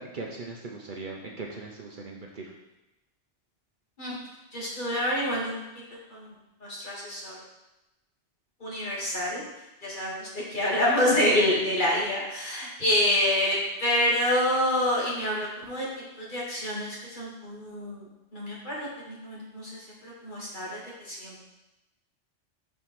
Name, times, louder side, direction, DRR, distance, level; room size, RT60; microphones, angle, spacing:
voice 1, 0.0-2.5, right 3 dB, 50° right, -1 dB, 0.9 m, -39 dB
voice 2, 4.5-5.6 6.1-6.3 6.6-7.4 8.6-9.4 9.8-21.4, left 1 dB, 45° left, -5 dB, 1.8 m, -27 dB
5.3 x 4.2 x 6.0 m, 0.97 s
omnidirectional pair, 1.2 m